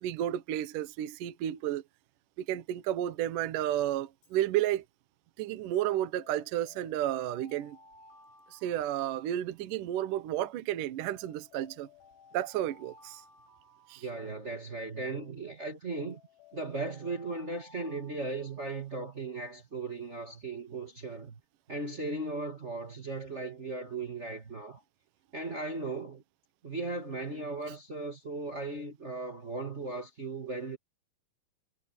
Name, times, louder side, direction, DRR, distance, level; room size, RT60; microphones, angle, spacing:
voice 1, 0.0-1.8 2.4-4.8 5.4-7.8 8.5-11.9 12.3-13.2 13.9-14.0, right 12 dB, 80° right, 1.9 m, -32 dB
Alarm, 4.1-4.4 6.2-9.9 11.0-14.8 15.9-19.1, left 4 dB, 65° left, 10.5 m, -59 dB
voice 2, 14.0-16.2 16.5-21.4 21.7-24.8 25.3-26.2 26.6-30.8, right 3 dB, 60° right, 0.7 m, -37 dB
omnidirectional pair, 5.8 m